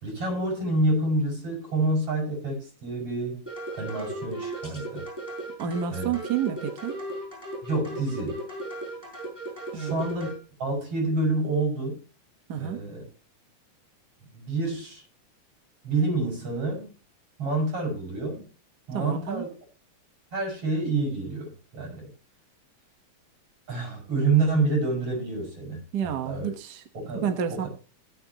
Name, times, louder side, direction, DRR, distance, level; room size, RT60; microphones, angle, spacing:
voice 1, 0.0-3.4 3.7-5.1 5.9-6.1 7.6-8.4 9.7-10.3 10.6-12.0 12.5-13.0 14.3-15.0 15.8-16.9 17.4-18.4 18.9-19.5 20.3-22.1 23.7-26.5 26.9-27.7, right 2 dB, 45° right, 1 dB, 6.7 m, -28 dB
sound 1, 3.5-10.4, right 2 dB, 5° right, 5.5 m, -36 dB
voice 2, 5.6-7.0 9.7-10.1 12.5-12.8 18.9-19.4 25.9-26.8 27.1-27.7, right 8 dB, 65° right, 8 dB, 1.0 m, -30 dB
18.0 x 7.9 x 2.9 m, 0.36 s
omnidirectional pair, 3.6 m